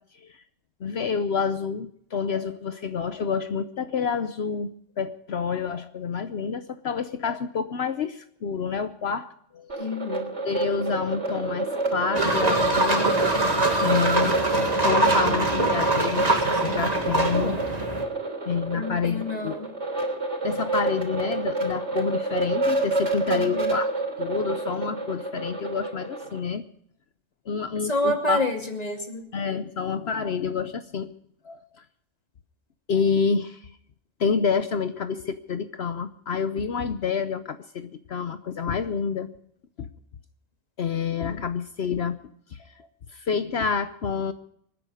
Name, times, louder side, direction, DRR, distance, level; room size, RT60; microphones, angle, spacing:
voice 1, 0.8-9.9 10.5-17.6 18.5-19.5 20.4-23.9 24.2-26.6 27.5-28.4 29.3-31.1 31.4-31.6 32.9-33.6 34.2-39.3 39.8-39.9 40.8-42.2 42.5-44.3, left 6 dB, 60° left, 10 dB, 1.0 m, -28 dB
sound 1, 9.7-26.4, right 2 dB, 70° right, 3.5 m, -28 dB
voice 2, 9.8-10.3 18.7-19.7 23.3-23.8 27.8-29.2 41.3-41.4, left 1 dB, 30° left, 3 dB, 2.6 m, -28 dB
sound 2, 12.1-18.0, right 2 dB, 35° right, 2.2 m, -24 dB
26.0 x 9.9 x 5.0 m, 0.68 s
omnidirectional pair, 1.3 m